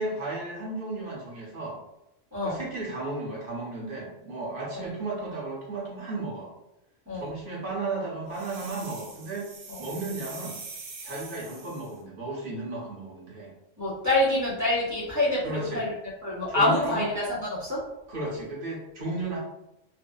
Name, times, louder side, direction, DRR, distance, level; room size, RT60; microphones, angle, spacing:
voice 1, 0.0-1.8 2.4-6.5 7.1-9.5 9.8-10.6 11.0-13.5 15.4-15.9 16.5-17.1 18.1-19.4, right 2 dB, 50° right, -4 dB, 0.8 m, -34 dB
voice 2, 2.3-2.6 4.7-4.9 7.1-7.3 9.7-9.8 13.8-15.9 16.2-17.8, left 1 dB, 15° right, -7 dB, 0.7 m, -26 dB
sound 1, 8.3-12.0, right 4 dB, 75° right, 0.4 m, -43 dB
2.6 x 2.4 x 2.2 m, 0.87 s
omnidirectional pair, 1.3 m